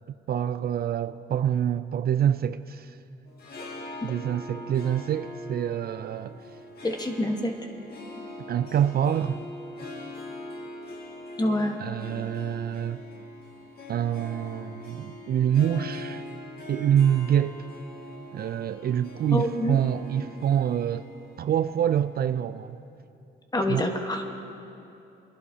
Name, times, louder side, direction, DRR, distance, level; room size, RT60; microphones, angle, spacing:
voice 1, 0.3-3.0 4.0-6.4 8.5-9.4 11.8-13.0 13.9-16.2 16.7-17.7 18.3-21.1 21.4-22.8 23.7-23.9, right 9 dB, 50° right, 0.4 m, -26 dB
Harp, 3.3-22.6, left 1 dB, 50° left, 2.0 m, -42 dB
voice 2, 6.8-7.5 11.4-11.8 19.3-19.8 23.5-24.2, left 1 dB, 20° left, 1.4 m, -26 dB
26.0 x 11.0 x 2.8 m
cardioid pair, 90°, 20 cm